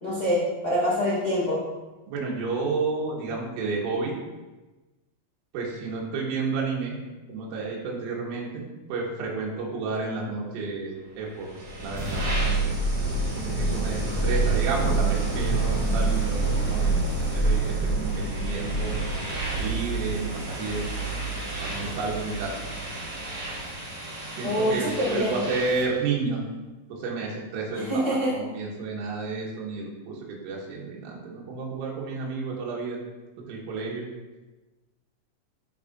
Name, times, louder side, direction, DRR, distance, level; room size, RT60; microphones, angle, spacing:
voice 1, 0.0-1.6 24.4-25.3 27.7-28.4, equal, 90° left, -10 dB, 0.8 m, -25 dB
voice 2, 2.1-4.1 5.5-7.0 7.3-8.6 8.9-11.5 11.8-12.6 13.4-16.9 17.3-19.0 19.6-20.8 21.6-22.6 24.4-26.4 26.9-33.0 33.4-34.1, right 4 dB, 80° right, -3 dB, 3.7 m, -31 dB
sound 1, 11.4-26.0, right 3 dB, 55° right, 3.9 m, -27 dB
11.5 x 4.4 x 2.5 m, 1.2 s
omnidirectional pair, 5.9 m